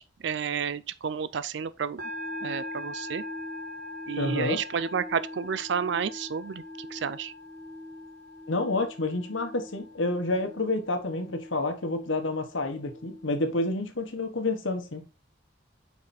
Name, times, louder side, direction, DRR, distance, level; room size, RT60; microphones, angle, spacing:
voice 1, 0.0-2.0 2.4-3.2 4.1-7.3, right 7 dB, 65° right, 0.4 m, -31 dB
sound 1, 2.0-13.4, left 1 dB, 50° right, 1.7 m, -41 dB
voice 2, 4.2-4.6 8.5-15.0, left 2 dB, 80° left, 1.4 m, -29 dB
6.0 x 4.8 x 4.3 m
head